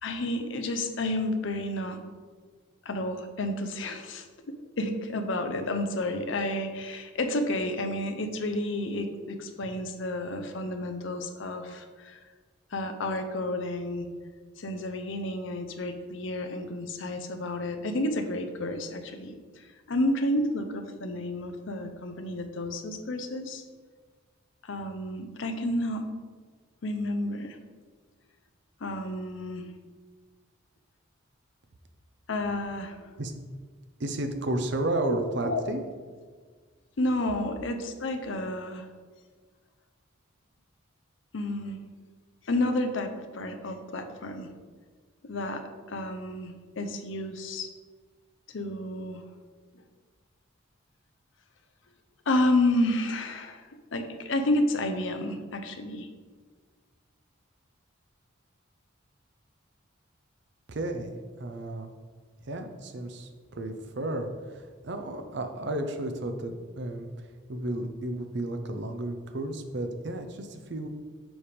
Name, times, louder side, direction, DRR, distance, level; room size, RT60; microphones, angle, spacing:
voice 1, 0.0-2.0 2.9-12.2 12.7-14.1 14.6-23.6 24.6-26.1 26.8-27.6 28.8-29.7 32.3-33.1 35.4-35.6 37.0-38.9 41.3-41.8 42.4-44.5 45.2-45.6 45.9-47.7 48.5-49.2 52.3-53.6 53.9-56.1, left 1 dB, 65° left, 7 dB, 0.6 m, -30 dB
voice 2, 34.0-35.8 60.7-61.9 62.5-67.1 67.5-70.9, right 1 dB, 55° right, 7 dB, 0.6 m, -33 dB
7.1 x 3.4 x 5.1 m, 1.5 s
head